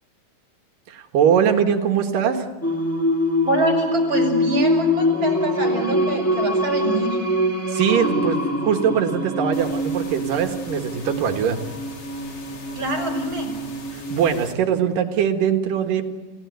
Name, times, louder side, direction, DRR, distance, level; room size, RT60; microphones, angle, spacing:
voice 1, 0.9-2.5 7.7-11.6 13.9-16.1, right 8 dB, 85° right, 5 dB, 3.2 m, -21 dB
Singing, 2.6-14.4, left 1 dB, 10° left, 0.9 m, -24 dB
voice 2, 3.4-7.2 12.7-13.5, right 2 dB, 35° right, 0 dB, 6.6 m, -25 dB
sound 1, 9.5-14.5, left 4 dB, 55° left, 3.9 m, -41 dB
29.0 x 16.5 x 9.4 m, 1.2 s
omnidirectional pair, 3.8 m